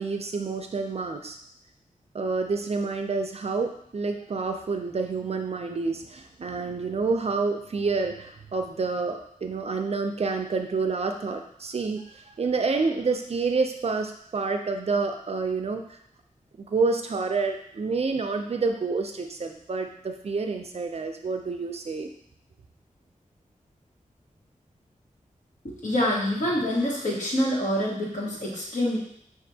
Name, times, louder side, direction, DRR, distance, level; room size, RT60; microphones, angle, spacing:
voice 1, 0.0-1.4 2.1-15.8 16.6-22.1, right 4 dB, 50° right, 5 dB, 0.4 m, -28 dB
voice 2, 25.6-29.0, left 1 dB, 65° left, -5 dB, 1.4 m, -26 dB
6.0 x 2.5 x 2.7 m, 0.68 s
wide cardioid pair, 110°, 14 cm